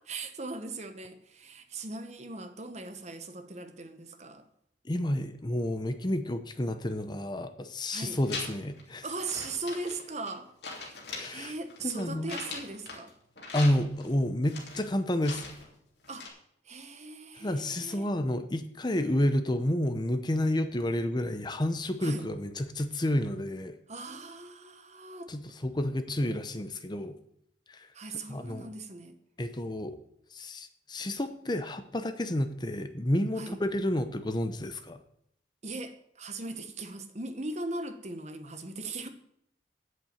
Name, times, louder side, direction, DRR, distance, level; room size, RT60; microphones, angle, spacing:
voice 1, 0.0-4.4 7.9-8.2 9.0-10.5 11.3-13.1 16.1-16.3 16.6-18.1 22.0-22.3 23.9-25.3 27.9-29.2 33.4-33.6 35.6-39.1, right 3 dB, 40° right, 1.1 m, -39 dB
voice 2, 4.8-9.0 11.1-11.5 11.8-12.4 13.5-15.5 17.3-23.7 25.3-27.2 27.7-27.9 28.3-28.7 29.4-30.0 30.3-35.0, left 1 dB, 25° left, 0.8 m, -30 dB
sound 1, 8.0-8.8 9.2-10.4 10.6-13.1 13.4-14.1 14.5-15.7 16.0-16.3, left 4 dB, 65° left, 3.0 m, -41 dB
8.4 x 7.9 x 8.7 m
head